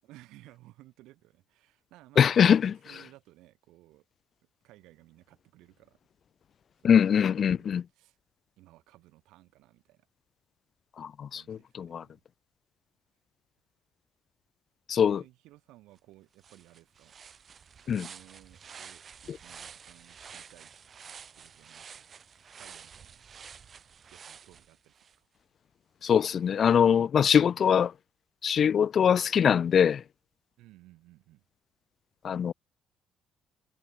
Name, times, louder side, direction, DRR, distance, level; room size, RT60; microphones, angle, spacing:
voice 1, 0.0-4.0 4.6-6.0 6.8-8.2 8.6-10.1 11.3-12.2 15.2-17.1 17.8-20.7 21.3-22.1 22.5-23.2 24.1-25.3 28.6-28.9 30.6-31.4, right 17 dB, 70° right, 6.2 m, -57 dB
voice 2, 2.2-2.7 6.8-7.8 11.0-12.0 14.9-15.2 17.9-18.0 26.0-27.9 28.4-30.0 32.2-32.5, left 8 dB, 50° left, 0.3 m, -23 dB
sound 1, 16.0-16.1 16.4-25.2, right 7 dB, 45° right, 3.3 m, -50 dB
hypercardioid pair, 50°, 0 cm